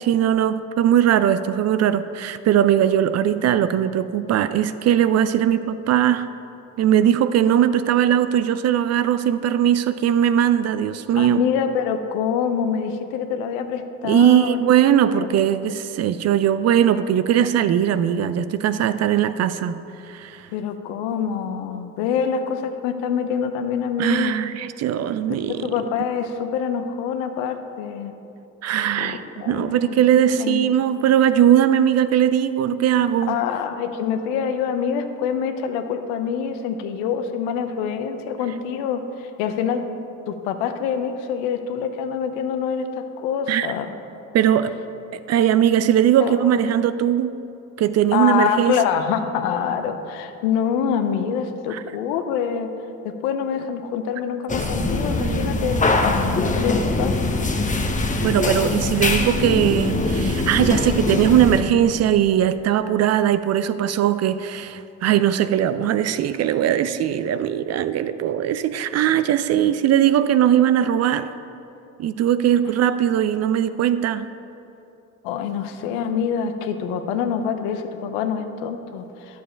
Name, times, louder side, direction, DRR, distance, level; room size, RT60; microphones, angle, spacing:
voice 1, 0.0-6.3 6.8-11.4 14.0-19.8 20.1-20.5 24.0-25.7 28.6-33.4 43.5-43.7 44.3-44.8 45.1-47.4 47.8-48.8 51.7-51.8 54.8-55.9 58.2-71.3 72.0-74.3, right 10 dB, 40° right, 13 dB, 0.5 m, -20 dB
voice 2, 11.2-14.6 15.1-15.3 20.5-24.4 25.3-28.1 29.0-30.0 30.4-30.6 33.3-39.8 40.3-43.9 46.2-46.6 48.1-52.7 53.0-57.5 75.2-79.4, left 7 dB, 70° left, 8 dB, 0.8 m, -26 dB
sound 1, 54.5-61.6, left 2 dB, 20° left, 0.9 m, -22 dB
11.0 x 7.0 x 4.4 m, 2.8 s
hypercardioid pair, 60°, 40 cm